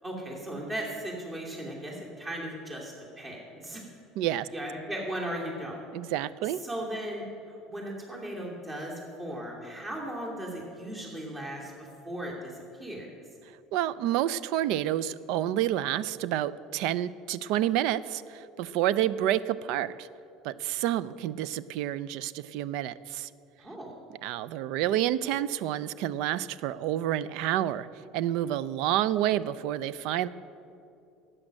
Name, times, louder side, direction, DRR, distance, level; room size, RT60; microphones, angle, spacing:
voice 1, 0.0-3.8 4.5-5.8 6.4-13.1 23.6-23.9, right 1 dB, 25° right, -2 dB, 2.7 m, -37 dB
voice 2, 4.2-4.5 5.9-6.6 13.7-20.1 20.4-23.3 24.2-27.9 28.1-30.3, right 12 dB, 70° right, 18 dB, 0.4 m, -29 dB
12.5 x 8.8 x 6.4 m, 2.7 s
supercardioid pair, 90°, 0 cm